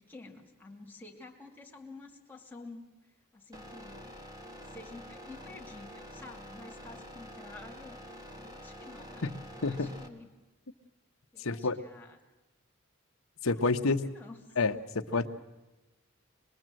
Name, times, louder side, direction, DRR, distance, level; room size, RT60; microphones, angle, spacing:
voice 1, 0.0-2.9 3.3-4.2 4.7-8.0 8.4-10.3 11.3-12.2 13.5-14.4 15.1-15.3, left 3 dB, 10° left, 0 dB, 2.5 m, -50 dB
sound 1, 3.5-10.1, equal, 20° right, 2.0 m, -47 dB
voice 2, 9.6-10.0 11.4-11.8 13.4-14.1 14.6-15.3, left 3 dB, 75° left, 7 dB, 1.1 m, -29 dB
25.0 x 21.5 x 7.7 m, 1.0 s
head